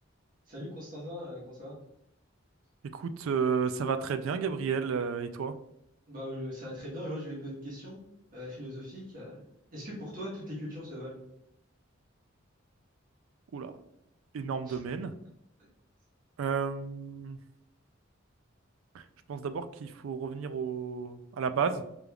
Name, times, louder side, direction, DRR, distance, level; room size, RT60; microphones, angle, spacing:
voice 1, 0.5-1.7 6.1-8.0 8.3-9.4 9.7-11.2 14.7-14.8, equal, 40° right, -6 dB, 1.3 m, -40 dB
voice 2, 2.9-5.5 13.5-13.7 14.3-15.1 16.4-17.4 18.9-19.0 19.3-21.8, right 6 dB, 80° right, 11 dB, 0.4 m, -32 dB
5.1 x 3.4 x 2.3 m, 0.78 s
head